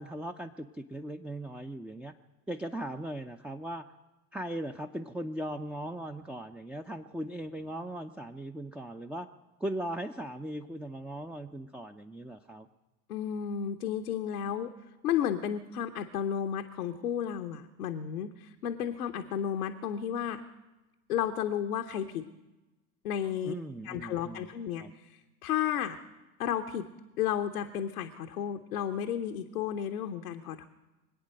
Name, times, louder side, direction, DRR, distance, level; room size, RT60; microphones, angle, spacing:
voice 1, 0.0-2.1 2.5-3.9 4.3-9.3 9.6-12.7 23.4-24.5 24.8-24.9, right 1 dB, 5° right, 6 dB, 0.5 m, -38 dB
voice 2, 13.1-14.7 15.0-20.4 21.1-22.3 23.0-23.5 23.8-26.0 26.4-26.9 27.2-30.6, left 9 dB, 80° left, 5 dB, 0.9 m, -33 dB
23.5 x 8.8 x 6.4 m, 1.1 s
figure-of-eight pair, 70°, 45 cm